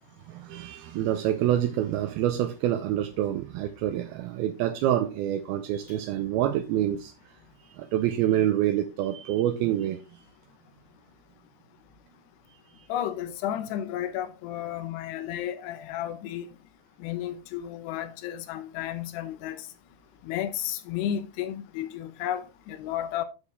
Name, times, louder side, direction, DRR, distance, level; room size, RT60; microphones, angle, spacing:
voice 1, 0.3-7.1 7.8-10.0, right 12 dB, 80° right, 2.5 m, -27 dB
voice 2, 12.9-16.5 17.0-19.7 20.2-23.2, left 11 dB, 85° left, 3.0 m, -32 dB
10.0 x 6.5 x 3.5 m
omnidirectional pair, 4.7 m